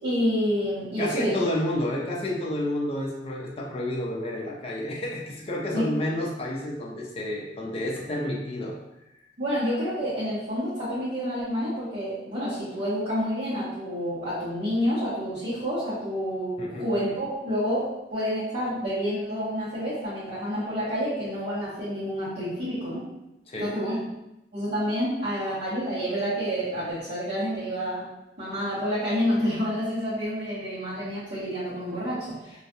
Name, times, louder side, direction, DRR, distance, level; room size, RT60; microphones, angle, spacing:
voice 1, 0.0-1.5 5.7-5.9 9.4-23.0 23.6-24.0 24.5-28.0 28.4-32.5, equal, 60° right, -12 dB, 0.8 m, -28 dB
voice 2, 1.0-8.7 16.6-16.9 23.5-23.7, left 1 dB, 35° left, -2 dB, 0.4 m, -30 dB
2.3 x 2.1 x 2.8 m, 0.90 s
head